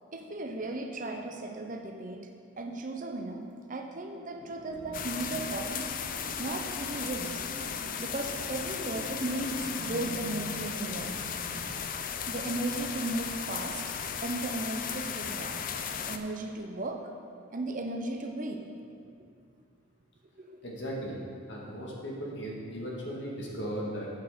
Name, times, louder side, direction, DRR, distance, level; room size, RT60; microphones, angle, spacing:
voice 1, 0.1-2.3 2.6-3.4 3.7-5.9 6.4-11.2 12.3-13.8 14.2-15.6 15.9-17.1 17.5-18.6 20.4-20.5, right 2 dB, 40° right, 4 dB, 0.7 m, -36 dB
sound 1, 4.4-11.7, right 1 dB, 70° right, 1.7 m, -45 dB
sound 2, 4.9-16.2, left 7 dB, 45° left, 0.5 m, -36 dB
voice 2, 20.6-21.1 21.5-24.1, equal, 60° left, -3 dB, 2.0 m, -37 dB
8.3 x 6.3 x 6.6 m, 2.3 s
head